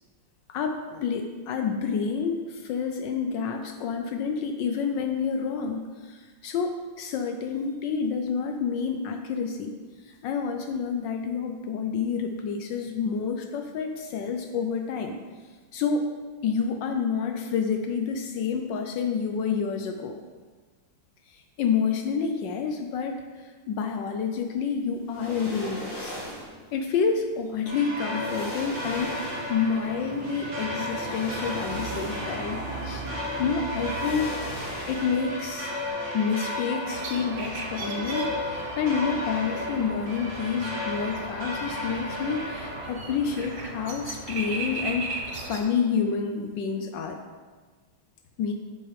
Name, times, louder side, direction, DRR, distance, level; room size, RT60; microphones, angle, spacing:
voice 1, 0.5-9.7 10.0-15.2 15.7-16.1 16.4-20.2 21.3-26.2 26.7-32.6 32.8-33.1 33.4-34.3 34.9-35.7 36.1-45.1 45.5-47.2 48.4-48.5, left 6 dB, 75° left, 5 dB, 1.1 m, -29 dB
sound 1, 25.1-26.6 27.6-27.7 28.1-29.7 30.8-32.5 32.8-33.0 33.8-35.4 35.7-35.8, left 1 dB, 55° left, 2.9 m, -39 dB
sound 2, 27.7-42.9, equal, 55° right, 2.5 m, -33 dB
sound 3, 36.9-45.6, right 2 dB, 75° right, 0.6 m, -37 dB
7.9 x 7.2 x 3.3 m, 1.4 s
omnidirectional pair, 2.4 m